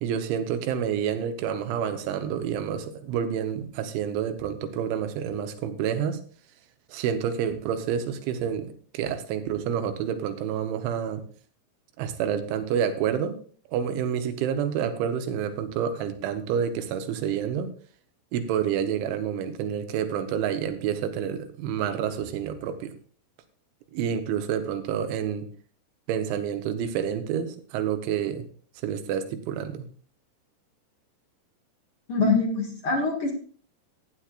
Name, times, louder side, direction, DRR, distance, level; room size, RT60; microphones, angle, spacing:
voice 1, 0.0-6.2 6.9-11.2 12.0-13.4 13.7-17.7 18.3-23.0 23.9-25.5 26.1-28.5 28.8-29.9, right 8 dB, 85° right, 9 dB, 3.5 m, -28 dB
voice 2, 32.1-33.3, left 3 dB, 50° left, 1 dB, 1.7 m, -24 dB
16.0 x 10.5 x 2.5 m, 0.43 s
omnidirectional pair, 5.3 m